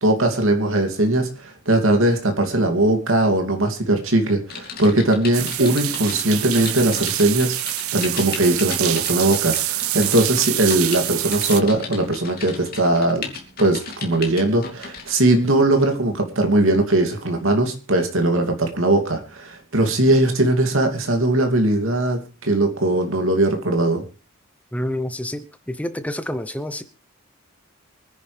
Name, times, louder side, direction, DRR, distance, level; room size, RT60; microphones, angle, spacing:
voice 1, 0.0-13.3 13.6-24.0, right 2 dB, 70° right, 2.8 m, -20 dB
Typing, 4.5-15.2 15.7-15.9, left 5 dB, 45° left, 2.9 m, -36 dB
sound 1, 5.3-11.6, right 15 dB, 85° right, 0.7 m, -26 dB
voice 2, 24.7-26.8, left 1 dB, 5° left, 0.9 m, -28 dB
24.5 x 10.5 x 3.4 m
head